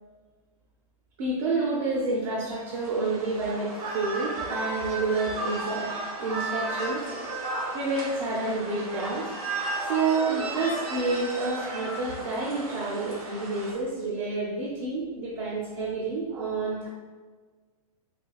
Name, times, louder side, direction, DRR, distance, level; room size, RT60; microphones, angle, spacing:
voice 1, 1.2-5.9 6.2-7.0 7.7-9.3 9.8-16.9, right 3 dB, 55° right, -5 dB, 0.7 m, -29 dB
sound 1, 2.6-13.7, right 2 dB, 70° right, 1.1 m, -34 dB
4.5 x 2.7 x 2.3 m, 1.4 s
hypercardioid pair, 155°, 19 cm